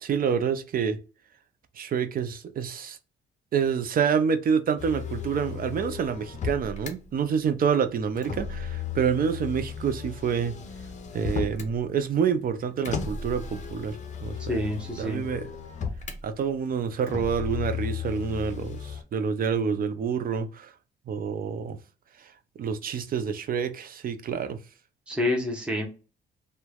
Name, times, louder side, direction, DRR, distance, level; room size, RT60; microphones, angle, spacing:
voice 1, 0.0-1.0 1.8-3.0 3.5-10.5 11.1-15.5 16.2-20.7 21.1-21.8 22.6-24.6, right 7 dB, 45° right, 0.4 m, -27 dB
Motor vehicle (road), 4.8-6.9 8.2-11.8 12.8-16.2 17.1-19.0, left 6 dB, 40° left, 0.5 m, -35 dB
voice 2, 14.5-15.2 25.1-25.9, left 1 dB, 5° right, 0.8 m, -28 dB
3.0 x 2.1 x 2.3 m
cardioid pair, 90°, 20 cm